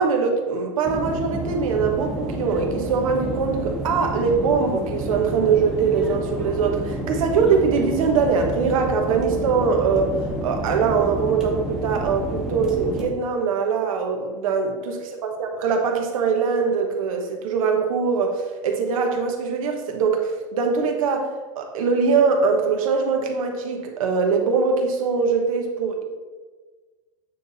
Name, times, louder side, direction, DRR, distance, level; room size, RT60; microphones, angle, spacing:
voice 1, 0.0-10.1 10.4-21.3 21.5-26.0, right 5 dB, 80° right, 3 dB, 1.3 m, -22 dB
sound 1, 0.8-13.1, right 1 dB, 5° right, 0.9 m, -29 dB
9.1 x 3.4 x 4.1 m, 1.4 s
supercardioid pair, 150°, 17 cm